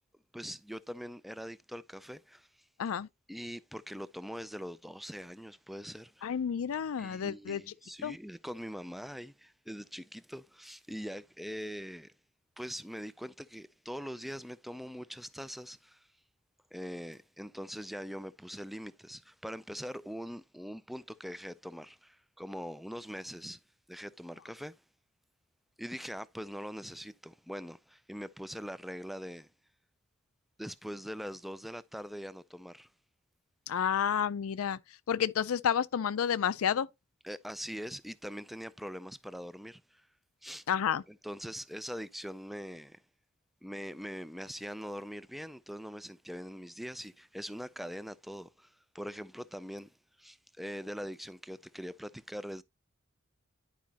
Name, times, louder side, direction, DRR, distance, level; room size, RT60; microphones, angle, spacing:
voice 1, 0.3-2.5 3.3-6.4 7.0-12.1 12.6-16.1 16.7-23.6 23.9-24.8 25.8-29.5 30.6-32.9 37.2-40.1 40.4-40.6 41.1-43.0 43.6-52.6, equal, ahead, 0.3 m, -42 dB
voice 2, 6.2-7.6 8.0-8.2 33.7-34.8 35.1-36.9 40.7-41.0, left 8 dB, 70° left, 0.4 m, -30 dB
10.5 x 4.9 x 2.8 m
head